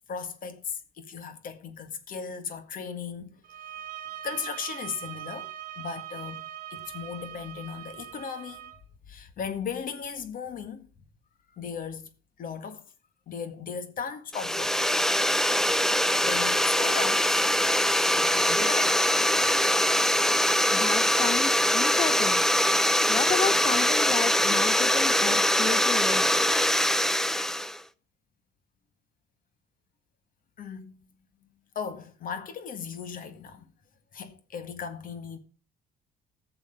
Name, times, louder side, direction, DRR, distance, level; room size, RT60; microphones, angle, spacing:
voice 1, 0.1-3.4 4.2-5.5 5.8-6.4 6.7-8.7 9.1-10.9 11.5-12.1 12.4-12.8 13.3-14.9 16.2-17.4 18.1-19.1 30.6-31.0 31.7-33.7 34.1-35.4, left 6 dB, 55° left, 1.8 m, -37 dB
sound 1, 3.4-8.8, right 11 dB, 55° right, 1.5 m, -41 dB
sound 2, 14.3-27.8, equal, 5° left, 0.5 m, -23 dB
voice 2, 20.7-22.4 23.1-26.4, left 5 dB, 30° left, 0.8 m, -32 dB
14.5 x 7.0 x 5.2 m
cardioid pair, 110°, 17 cm